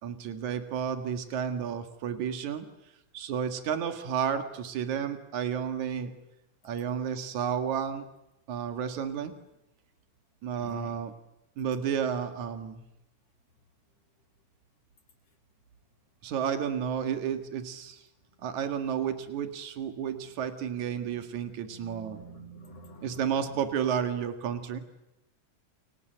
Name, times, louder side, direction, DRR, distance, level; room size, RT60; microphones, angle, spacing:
voice 1, 0.0-2.7 3.1-6.1 6.6-8.1 8.5-9.3 10.4-11.1 11.6-12.8 16.2-18.0 18.4-22.2 23.0-24.8, right 8 dB, 75° right, 7 dB, 3.2 m, -31 dB
voice 2, 10.5-11.0 20.2-20.3 20.6-21.1 21.7-23.6, right 1 dB, 60° left, -1 dB, 5.7 m, -48 dB
29.5 x 25.5 x 7.8 m, 0.90 s
omnidirectional pair, 3.4 m